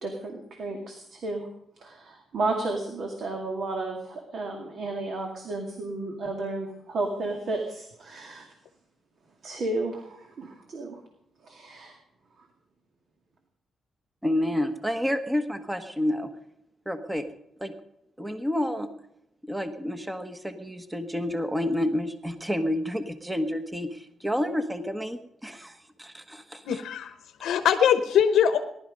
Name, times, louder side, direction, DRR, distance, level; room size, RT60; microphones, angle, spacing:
voice 1, 0.0-1.5 1.8-8.5 9.4-11.0 11.4-12.0, right 2 dB, 60° right, 2 dB, 2.3 m, -32 dB
voice 2, 14.2-16.3 16.8-17.2 17.6-17.7 18.2-18.9 19.4-26.8, left 1 dB, 10° right, 8 dB, 1.2 m, -29 dB
voice 3, 26.6-27.1 27.4-28.6, left 8 dB, 90° left, 8 dB, 1.0 m, -22 dB
19.0 x 12.0 x 5.3 m, 0.77 s
cardioid pair, 100°, 0 cm